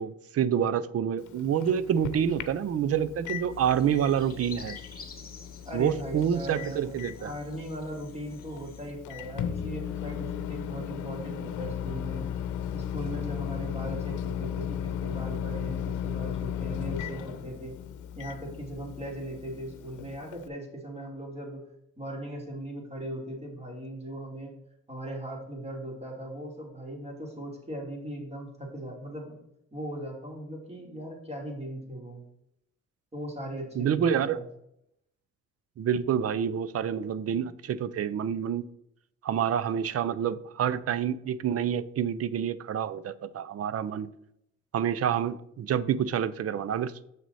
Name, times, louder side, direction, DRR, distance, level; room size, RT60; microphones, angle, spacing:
voice 1, 0.0-4.8 5.7-7.3 33.8-34.4 35.8-38.7 39.2-44.1 44.7-46.9, right 8 dB, 50° right, 16 dB, 0.6 m, -28 dB
Microwave oven, 1.2-20.5, left 9 dB, 85° left, 0.8 m, -36 dB
sound 1, 3.5-8.9, left 4 dB, 30° left, 2.1 m, -50 dB
voice 2, 5.6-6.9 7.2-12.3 12.7-17.8 18.1-21.6 22.0-24.5 24.9-29.4 29.7-32.2 33.1-34.4, right 1 dB, 20° right, 0 dB, 3.2 m, -38 dB
7.6 x 6.1 x 4.2 m, 0.77 s
cardioid pair, 90°, 30 cm